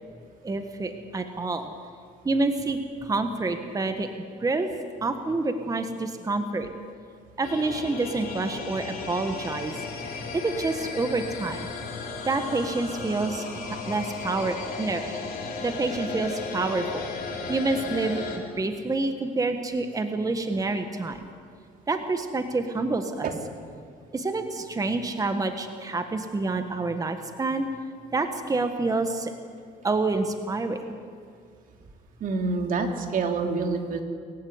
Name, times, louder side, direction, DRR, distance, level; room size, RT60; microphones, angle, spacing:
voice 1, 0.4-1.7 2.2-4.1 4.4-4.7 5.0-6.7 7.4-9.8 10.3-11.7 12.2-13.5 13.9-15.2 15.6-17.1 17.5-21.2 21.9-23.3 24.1-27.7 28.1-29.3 29.8-31.0, right 3 dB, 20° right, 7 dB, 1.6 m, -28 dB
sound 1, 7.4-18.4, left 4 dB, 60° left, 4.9 m, -35 dB
voice 2, 32.2-34.0, right 4 dB, 55° right, 4 dB, 3.0 m, -27 dB
23.0 x 15.5 x 9.7 m, 2.1 s
cardioid pair, 110°, 17 cm